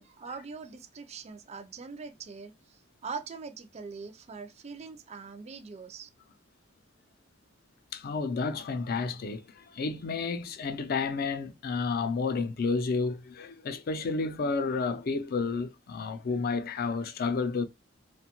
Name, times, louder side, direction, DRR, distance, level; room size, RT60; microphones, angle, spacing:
voice 1, 0.0-2.5 3.0-6.1, right 5 dB, 35° right, 0.4 m, -42 dB
voice 2, 7.9-17.7, left 4 dB, 50° left, 0.4 m, -31 dB
2.6 x 2.1 x 2.9 m
head